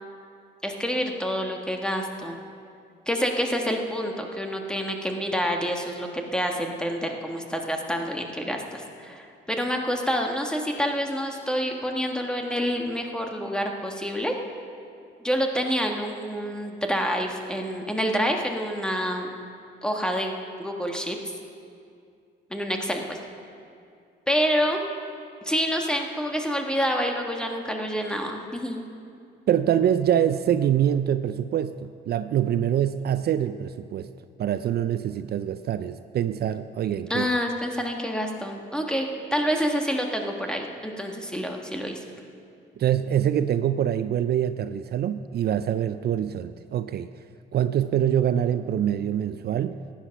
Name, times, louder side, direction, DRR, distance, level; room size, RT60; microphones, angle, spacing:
voice 1, 0.6-2.4 3.1-14.3 15.2-19.3 19.8-20.3 20.6-21.2 22.5-23.2 24.3-24.8 25.4-28.8 37.1-42.0, equal, 5° left, 2 dB, 1.5 m, -27 dB
voice 2, 29.5-34.1 34.4-37.3 42.8-47.1 47.5-49.8, right 10 dB, 55° right, 11 dB, 0.4 m, -25 dB
15.5 x 10.0 x 5.9 m, 2.4 s
cardioid pair, 90°, 20 cm